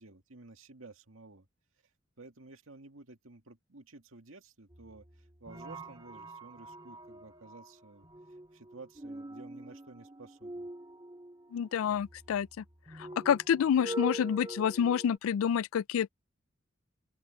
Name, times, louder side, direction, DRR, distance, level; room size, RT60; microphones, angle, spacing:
voice 1, 0.0-1.5 2.2-8.1 8.5-10.7, right 3 dB, 80° right, 2.1 m, -53 dB
Resonant Model Gongs, 4.7-15.2, right 1 dB, 20° right, 2.4 m, -44 dB
voice 2, 11.5-12.5 13.0-16.1, left 8 dB, 85° left, 0.3 m, -28 dB
open air
head